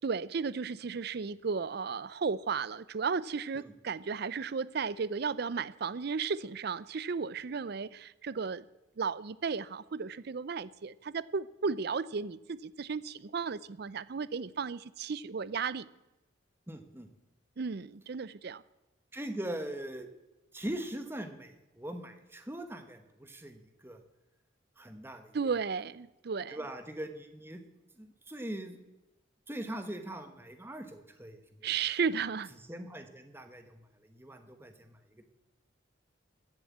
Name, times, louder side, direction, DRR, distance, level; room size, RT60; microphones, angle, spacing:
voice 1, 0.0-8.6 9.0-15.9 17.6-18.6 25.3-26.6 31.6-32.5, right 5 dB, 55° right, 0.5 m, -34 dB
voice 2, 16.7-17.1 19.1-20.1 20.5-24.0 24.8-25.3 26.5-27.6 28.0-28.8 29.5-31.7 32.7-35.3, right 1 dB, 10° right, 1.2 m, -41 dB
15.0 x 7.6 x 8.4 m
head